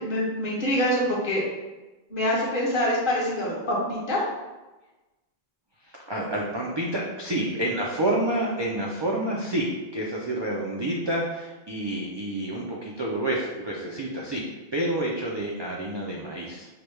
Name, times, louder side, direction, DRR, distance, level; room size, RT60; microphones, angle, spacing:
voice 1, 0.0-1.4 2.1-4.2 7.3-7.4, equal, 60° left, -4 dB, 1.1 m, -25 dB
voice 2, 6.1-9.7 9.9-16.7, right 1 dB, 45° right, -3 dB, 0.3 m, -28 dB
4.7 x 2.2 x 3.1 m, 1.1 s
omnidirectional pair, 1.0 m